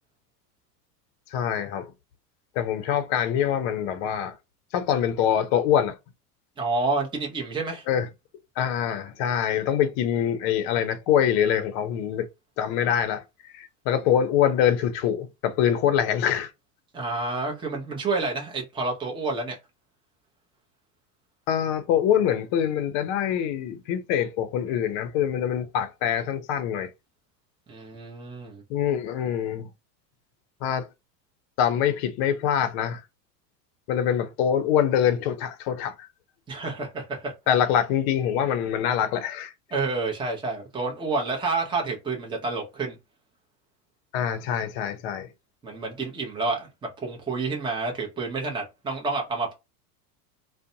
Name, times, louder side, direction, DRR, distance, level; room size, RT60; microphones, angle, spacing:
voice 1, 1.3-1.9 2.6-4.3 4.7-5.9 7.9-8.1 8.6-12.3 12.6-13.2 13.5-16.5 21.5-26.9 28.7-29.7 30.6-30.9 31.6-33.0 33.9-36.1 37.5-39.5 44.1-45.3, left 9 dB, 50° left, 0.6 m, -24 dB
voice 2, 6.6-7.9 16.9-19.6 27.7-28.6 36.5-37.3 39.7-43.0 45.6-49.5, right 3 dB, 10° right, 0.7 m, -29 dB
2.5 x 2.2 x 2.6 m
hypercardioid pair, 95°, 49 cm